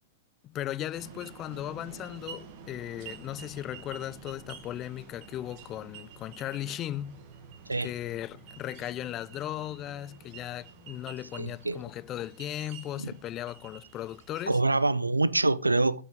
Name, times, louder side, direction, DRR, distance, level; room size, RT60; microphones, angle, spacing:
voice 1, 0.4-7.2 7.8-14.6, left 12 dB, 30° left, 0.4 m, -37 dB
sound 1, 0.9-14.7, right 6 dB, 40° right, 1.7 m, -49 dB
voice 2, 11.4-11.8 13.0-13.1 14.5-16.0, right 2 dB, 85° right, 0.4 m, -25 dB
13.0 x 4.9 x 5.1 m
figure-of-eight pair, 100°, 0 cm